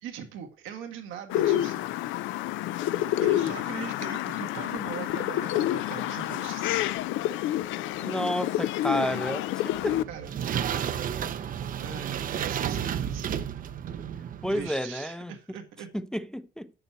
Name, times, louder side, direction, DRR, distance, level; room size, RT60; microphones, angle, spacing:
voice 1, 0.0-2.0 3.2-6.7 10.1-10.3 11.8-13.4 14.5-15.9, right 8 dB, 90° right, 1.6 m, -40 dB
sound 1, 1.3-10.0, left 13 dB, 85° left, 0.5 m, -28 dB
voice 2, 8.0-10.1 14.4-15.6 15.9-16.7, equal, 5° left, 0.5 m, -31 dB
sound 2, 9.8-14.7, right 9 dB, 45° right, 0.6 m, -32 dB
9.1 x 6.7 x 4.3 m
cardioid pair, 125°, 20 cm